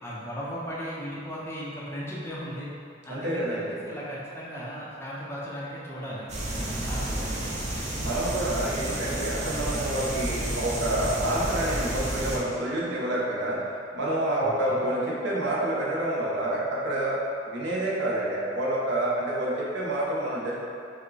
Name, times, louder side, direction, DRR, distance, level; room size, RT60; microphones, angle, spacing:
voice 1, 0.0-2.7 3.1-7.5 9.4-9.6 14.7-14.8, equal, 10° left, -7 dB, 0.5 m, -37 dB
voice 2, 3.1-3.8 8.0-13.6 13.9-17.2 17.4-20.6, right 1 dB, 60° right, -6 dB, 0.8 m, -28 dB
sound 1, 6.3-12.4, right 1 dB, 35° right, 0.6 m, -31 dB
5.0 x 2.1 x 3.9 m, 2.6 s
head